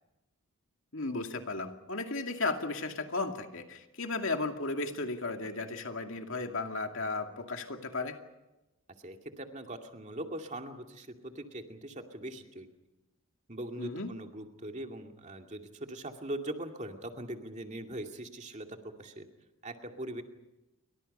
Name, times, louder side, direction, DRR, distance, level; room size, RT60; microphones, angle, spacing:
voice 1, 0.9-8.2 13.8-14.1, left 3 dB, 60° left, 4 dB, 2.4 m, -35 dB
voice 2, 9.0-12.7 13.5-19.3 19.6-20.2, right 1 dB, 30° right, 4 dB, 2.4 m, -41 dB
29.5 x 24.5 x 5.5 m, 0.99 s
head